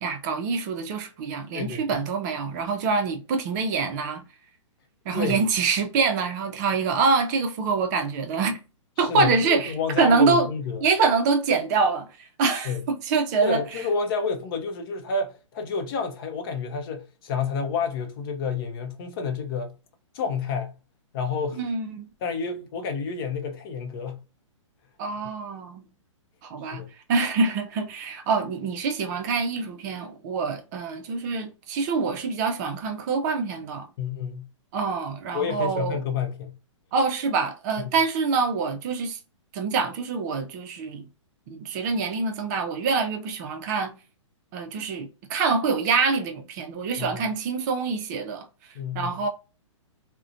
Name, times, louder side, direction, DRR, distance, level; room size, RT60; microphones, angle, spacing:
voice 1, 0.0-4.2 5.1-8.6 9.0-10.5 10.8-13.8 21.6-22.1 25.0-25.8 26.4-26.8 27.1-33.9 34.7-36.0 36.9-39.2 39.5-41.1 41.5-43.9 44.5-49.3, right 4 dB, 35° right, 0.5 m, -25 dB
voice 2, 5.1-5.4 9.0-10.8 12.6-12.8 13.4-19.8 20.1-20.8 21.1-21.6 22.2-24.2 26.7-26.9 34.0-34.5 35.3-36.6 37.8-37.9 47.0-47.3 48.7-49.2, left 5 dB, 45° left, 0.6 m, -29 dB
2.4 x 2.1 x 2.5 m
hypercardioid pair, 135°, 16 cm